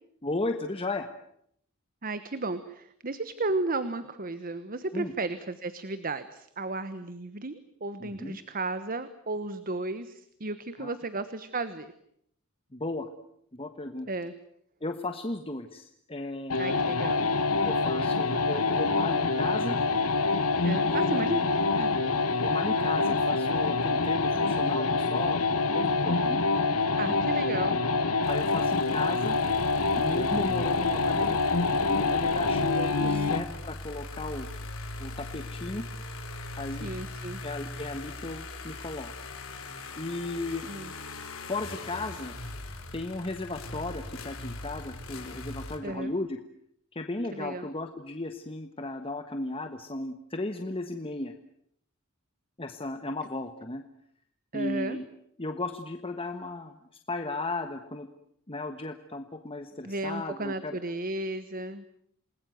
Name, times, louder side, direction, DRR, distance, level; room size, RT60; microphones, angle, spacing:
voice 1, 0.2-1.1 4.9-5.1 8.0-8.4 10.8-10.9 12.7-13.1 13.5-14.1 14.8-16.6 17.6-19.8 20.8-21.5 22.4-25.4 25.7-26.4 28.3-29.4 29.9-34.5 35.0-35.9 36.6-36.9 37.4-39.1 40.0-40.7 41.5-42.3 42.9-46.4 46.9-51.3 52.6-53.8 54.5-55.1 55.4-56.7 57.1-58.1 58.5-60.8, left 2 dB, 25° left, 6 dB, 1.3 m, -35 dB
voice 2, 2.0-11.9 14.1-14.3 16.6-17.2 20.6-21.4 21.8-21.9 27.0-27.8 33.0-33.4 36.6-37.4 40.7-40.9 45.8-46.2 47.3-47.7 54.5-55.0 59.8-61.8, right 2 dB, 40° right, 12 dB, 1.3 m, -34 dB
sound 1, 16.5-33.5, left 3 dB, 85° left, 1.5 m, -26 dB
sound 2, 28.2-45.8, left 2 dB, 65° left, 4.1 m, -41 dB
28.0 x 20.5 x 9.3 m, 0.72 s
head